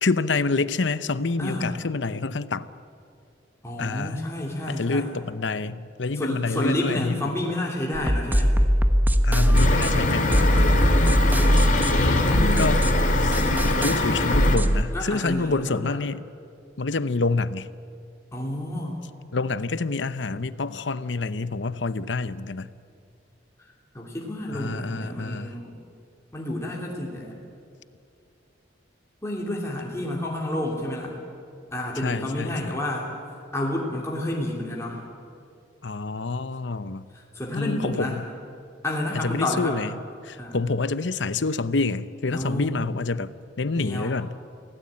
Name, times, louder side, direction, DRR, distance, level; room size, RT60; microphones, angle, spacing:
voice 1, 0.0-2.7 3.8-4.2 4.7-7.2 9.2-10.8 12.0-12.8 13.1-16.2 16.8-17.7 19.3-22.7 24.5-25.6 32.0-32.8 35.8-37.1 37.5-38.1 39.1-39.9 40.2-43.3 43.6-44.3, left 3 dB, 75° left, 15 dB, 0.8 m, -27 dB
voice 2, 1.4-1.7 3.6-5.1 6.2-8.5 12.0-12.8 14.9-16.0 18.3-19.0 23.9-25.7 26.3-27.3 29.2-31.1 31.7-33.1 33.5-35.0 37.1-38.2 38.8-39.8 40.4-40.6 42.3-42.7 43.8-44.2, left 1 dB, 15° left, -3 dB, 3.0 m, -30 dB
sound 1, 7.9-14.8, equal, 10° right, 1.1 m, -21 dB
sound 2, 9.5-14.6, left 2 dB, 45° left, 2.4 m, -23 dB
25.0 x 17.0 x 8.8 m, 2.5 s
head